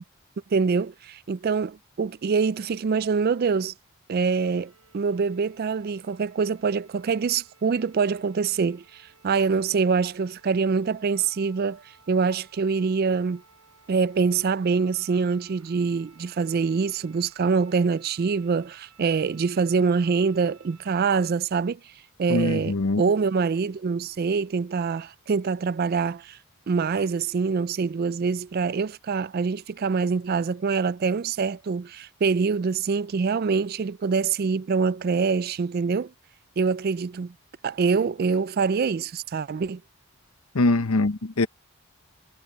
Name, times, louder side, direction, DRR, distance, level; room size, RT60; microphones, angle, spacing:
voice 1, 0.5-3.7 4.1-13.4 13.9-21.8 22.2-26.4 26.7-36.1 36.6-37.3 37.6-39.8, right 5 dB, 45° right, 0.3 m, -25 dB
sound 1, 4.2-21.3, right 6 dB, 85° right, 6.0 m, -58 dB
voice 2, 22.3-23.0 40.5-41.5, left 2 dB, 75° left, 0.9 m, -23 dB
head